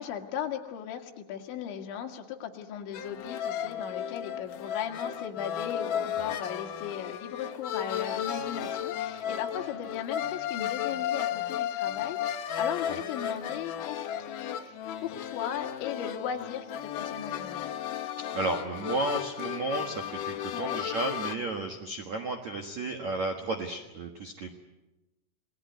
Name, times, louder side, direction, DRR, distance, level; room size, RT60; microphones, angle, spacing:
voice 1, 0.0-17.7 20.5-20.8, left 9 dB, 65° left, 3 dB, 4.1 m, -37 dB
sound 1, 2.9-21.3, left 10 dB, 85° left, 1.8 m, -34 dB
voice 2, 18.3-24.5, right 2 dB, 75° right, 4 dB, 1.7 m, -33 dB
28.5 x 19.0 x 9.5 m, 1.0 s
omnidirectional pair, 5.9 m